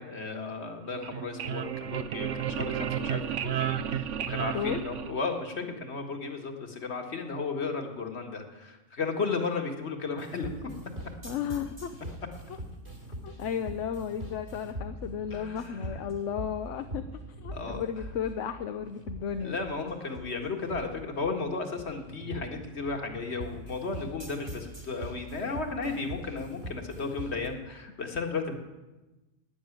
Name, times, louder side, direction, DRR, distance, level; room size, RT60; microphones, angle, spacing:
voice 1, 0.0-10.7 15.3-15.9 17.5-17.8 19.4-28.6, left 4 dB, 60° left, 4 dB, 2.0 m, -34 dB
sound 1, 0.9-5.6, right 9 dB, 80° right, 1.0 m, -32 dB
voice 2, 4.5-4.9 11.2-12.0 12.5-12.6 13.2-17.0 17.4-19.6, left 8 dB, 75° left, 8 dB, 1.1 m, -34 dB
sound 2, 10.2-27.5, right 1 dB, 60° right, 3.1 m, -42 dB
12.0 x 9.7 x 9.2 m, 1.1 s
omnidirectional pair, 1.3 m